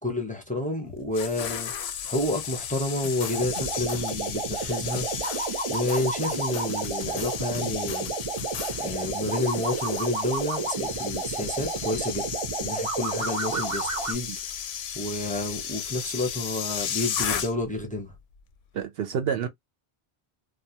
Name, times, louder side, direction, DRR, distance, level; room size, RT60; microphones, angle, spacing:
voice 1, 0.0-5.0 5.7-8.1 8.8-12.3 12.6-14.5 14.9-18.1, left 2 dB, 10° left, 0.5 m, -30 dB
sound 1, 0.9-17.8 18.1-18.4, left 8 dB, 80° left, 0.8 m, -34 dB
sound 2, 3.0-4.1 4.5-8.8 9.2-10.1, left 7 dB, 55° left, 0.6 m, -41 dB
sound 3, 3.3-14.1, right 4 dB, 40° right, 0.6 m, -31 dB
voice 2, 18.7-19.5, right 8 dB, 75° right, 0.8 m, -29 dB
2.3 x 2.3 x 2.7 m
omnidirectional pair, 1.1 m